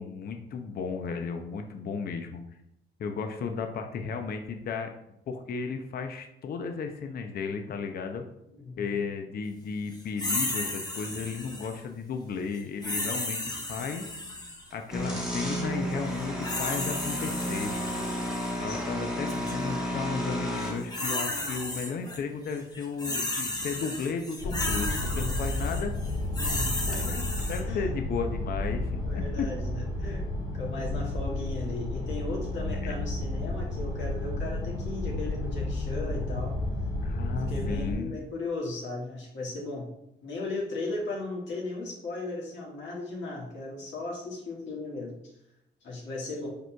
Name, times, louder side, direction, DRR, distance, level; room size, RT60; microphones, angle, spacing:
voice 1, 0.0-2.4 3.0-4.9 5.3-8.2 8.8-13.4 13.7-14.1 14.7-17.7 18.6-25.9 26.8-29.5 32.7-33.0 37.0-38.2, left 5 dB, 50° left, 5 dB, 0.5 m, -34 dB
voice 2, 8.5-9.0 18.7-19.0 26.5-27.2 27.6-27.9 29.0-30.3 30.5-36.5 37.3-39.9 40.2-45.3 45.8-46.5, left 2 dB, 65° left, -2 dB, 1.6 m, -36 dB
sound 1, 10.2-11.8 12.8-14.7 16.1-18.6 19.3-19.5 20.6-22.2 22.5-27.6, left 2 dB, 20° left, 1.0 m, -33 dB
sound 2, 14.7-20.9 24.4-24.5 24.9-25.0 26.9-27.1 27.4-27.5, equal, 5° right, 1.1 m, -32 dB
sound 3, 24.4-37.9, left 2 dB, 85° left, 1.4 m, -32 dB
5.0 x 4.5 x 2.3 m, 0.82 s
cardioid pair, 90°, 20 cm